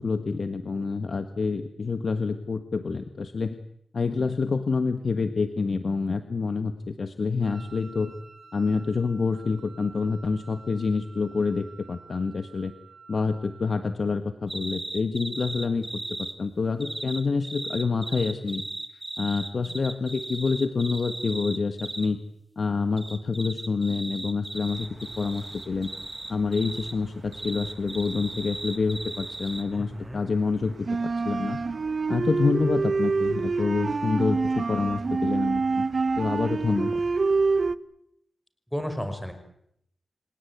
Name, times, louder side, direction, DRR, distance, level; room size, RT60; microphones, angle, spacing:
voice 1, 0.0-3.6 3.9-8.1 8.5-12.7 13.1-15.9 16.2-18.6 18.9-22.2 22.6-24.9 25.2-25.9 26.3-30.7 31.0-31.6 32.1-35.8 36.2-37.0, left 4 dB, 60° left, 8 dB, 1.6 m, -27 dB
Wind instrument woodwind instrument, 7.4-14.0, right 5 dB, 70° right, 5.1 m, -51 dB
sound 1, 14.5-16.4 16.8-22.1 23.0-27.0 27.3-29.6, right 2 dB, 25° right, 2.5 m, -37 dB
sound 2, 25.1-26.0 26.3-29.2 29.6-37.8, right 4 dB, 55° right, 1.0 m, -27 dB
voice 2, 29.7-30.2 38.7-39.3, equal, 5° left, 8 dB, 5.4 m, -33 dB
28.5 x 17.5 x 9.5 m, 0.72 s
wide cardioid pair, 80°, 0 cm